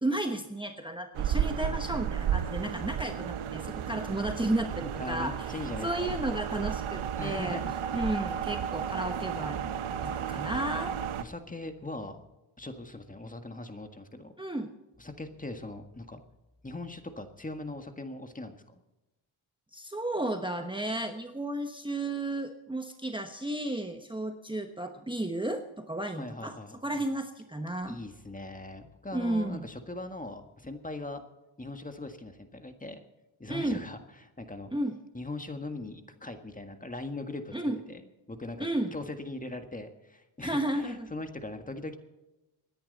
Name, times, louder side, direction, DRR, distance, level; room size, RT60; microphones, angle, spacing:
voice 1, 0.0-5.6 5.8-7.6 7.9-9.7 10.0-10.9 14.4-14.7 19.7-26.6 26.8-28.0 29.1-29.7 33.5-33.8 34.7-35.0 37.5-37.8 38.6-39.0 40.4-41.1, right 1 dB, 10° right, 5 dB, 1.1 m, -33 dB
sound 1, 1.1-11.2, right 8 dB, 90° right, 0.9 m, -33 dB
voice 2, 5.0-6.2 7.2-7.8 11.2-12.2 12.6-14.3 15.0-16.2 16.6-18.8 26.1-27.0 27.9-31.2 31.6-33.0 33.4-34.7 35.1-37.5 37.9-38.0 38.3-42.0, left 2 dB, 15° left, 7 dB, 1.7 m, -40 dB
27.0 x 10.5 x 4.1 m, 1.0 s
cardioid pair, 90°, 48 cm